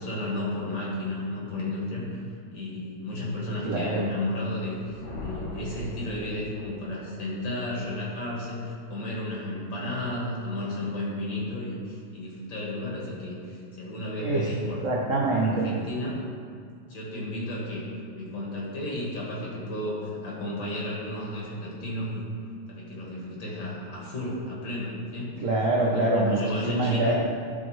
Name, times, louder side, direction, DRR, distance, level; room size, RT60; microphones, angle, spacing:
voice 1, 0.0-2.2 2.5-14.9 15.3-16.2 16.9-17.9 18.1-22.2 22.7-25.4 25.8-27.2, left 1 dB, 60° left, -5 dB, 2.1 m, -33 dB
voice 2, 3.6-4.1 14.2-14.5 14.8-15.7 25.4-27.1, right 2 dB, 90° right, -3 dB, 0.6 m, -25 dB
Thunder, 4.7-6.9, left 2 dB, 40° left, 1.2 m, -40 dB
11.0 x 4.0 x 3.1 m, 2.2 s
omnidirectional pair, 2.4 m